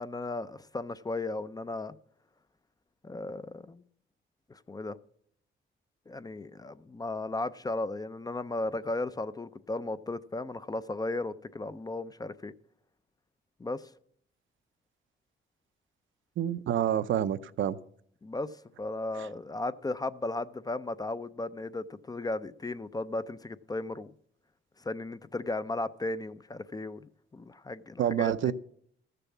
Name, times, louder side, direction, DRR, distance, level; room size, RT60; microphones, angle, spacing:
voice 1, 0.0-1.9 3.0-3.8 4.5-5.0 6.1-12.5 13.6-13.8 18.2-18.5 18.8-24.1 24.8-27.0 27.3-28.5, left 2 dB, 20° left, 0.5 m, -35 dB
voice 2, 16.4-17.8 19.2-19.3 28.0-28.5, right 10 dB, 70° right, 0.6 m, -28 dB
14.0 x 6.8 x 7.2 m
cardioid pair, 115°, 21 cm